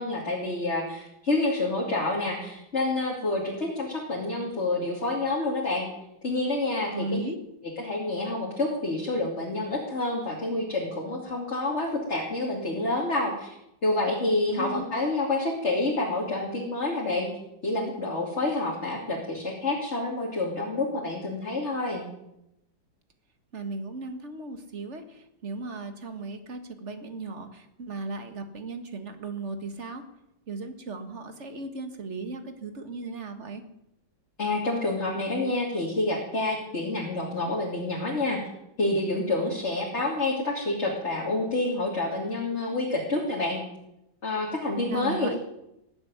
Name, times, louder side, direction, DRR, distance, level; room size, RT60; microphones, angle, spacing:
voice 1, 0.0-5.9 6.2-7.2 7.8-13.5 13.8-17.3 17.6-22.0 34.4-38.4 38.8-43.6 44.2-45.3, left 2 dB, 35° left, -2 dB, 2.9 m, -28 dB
voice 2, 6.9-7.4 14.5-14.9 23.5-30.0 30.5-33.6 44.9-45.3, right 3 dB, 40° right, 7 dB, 1.9 m, -36 dB
18.5 x 8.0 x 9.5 m, 0.86 s
omnidirectional pair, 2.0 m